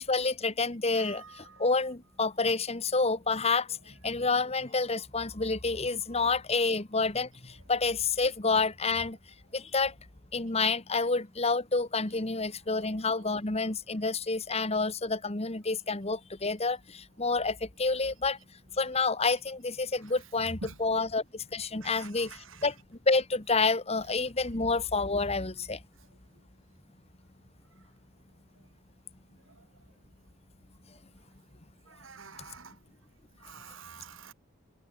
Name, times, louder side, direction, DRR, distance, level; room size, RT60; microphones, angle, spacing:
voice 1, 0.0-9.2 9.5-9.9 10.3-18.4 18.7-22.7 23.1-25.8, left 3 dB, 30° left, 1.7 m, -29 dB
voice 2, 0.9-1.7 3.8-4.0 6.1-6.3 7.5-7.6 12.7-13.3 20.0-20.2 20.6-20.8 21.8-22.7 25.6-25.7 29.5-29.6 31.9-32.8 33.4-34.3, right 4 dB, 75° right, 2.8 m, -49 dB
head